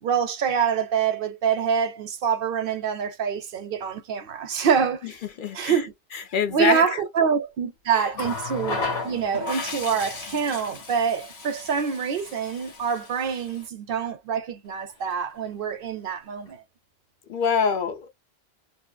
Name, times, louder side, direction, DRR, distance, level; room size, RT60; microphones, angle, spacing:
voice 1, 0.0-5.2 5.5-5.9 6.5-16.6, right 7 dB, 65° right, 0.7 m, -26 dB
voice 2, 5.4-5.8 6.3-6.8 17.3-18.1, left 6 dB, 60° left, 0.6 m, -24 dB
Water tap faucet, 8.1-13.7 14.9-15.1, left 3 dB, 80° left, 1.2 m, -34 dB
2.7 x 2.5 x 2.2 m
omnidirectional pair, 1.1 m